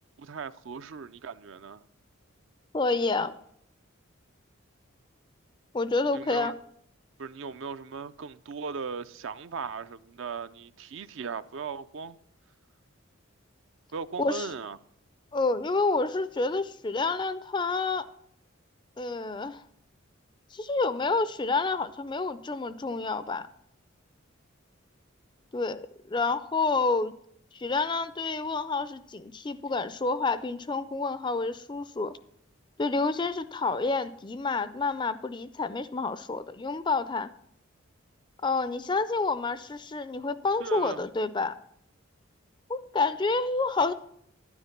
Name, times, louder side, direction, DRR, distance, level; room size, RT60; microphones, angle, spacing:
voice 1, 0.2-1.8 6.1-6.6 7.2-12.2 13.9-14.8 40.6-41.0, right 5 dB, 60° right, 0.4 m, -38 dB
voice 2, 2.7-3.3 5.7-6.5 14.2-14.5 15.3-18.1 19.0-19.6 20.5-23.5 25.5-27.2 27.5-32.2 32.8-37.3 38.4-41.6 42.7-43.9, left 3 dB, 20° left, 0.4 m, -28 dB
11.5 x 9.7 x 5.8 m
head